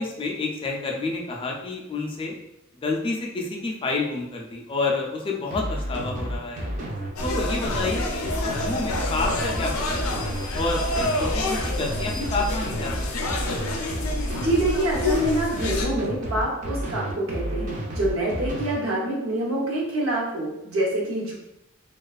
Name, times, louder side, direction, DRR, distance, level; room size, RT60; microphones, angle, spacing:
voice 1, 0.0-2.4 2.8-6.7 7.2-13.2, left 3 dB, 25° left, 0 dB, 0.3 m, -29 dB
sound 1, 5.5-18.8, equal, 40° right, 0.4 m, -30 dB
sound 2, 7.2-15.9, left 2 dB, 90° left, 0.4 m, -28 dB
voice 2, 14.3-21.3, right 1 dB, 75° right, -3 dB, 0.8 m, -26 dB
2.3 x 2.3 x 2.3 m, 0.84 s
head